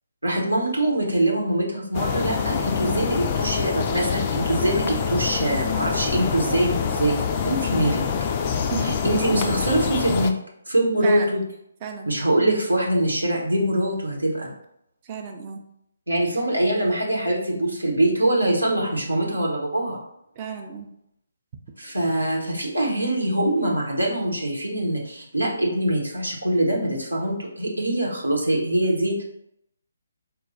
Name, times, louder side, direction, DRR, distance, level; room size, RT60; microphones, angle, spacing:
voice 1, 0.2-7.1 7.4-8.0 8.8-10.3 10.7-11.4 12.1-14.5 16.1-20.0 21.8-29.2, right 1 dB, 80° right, -2 dB, 1.1 m, -23 dB
sound 1, 1.9-10.3, left 6 dB, 30° left, 0.3 m, -25 dB
voice 2, 8.6-9.0 11.0-11.4 11.8-12.1 15.0-15.6 20.4-20.9, right 5 dB, 30° right, 3 dB, 0.5 m, -33 dB
4.2 x 2.3 x 4.1 m, 0.76 s
figure-of-eight pair, 140°, 0 cm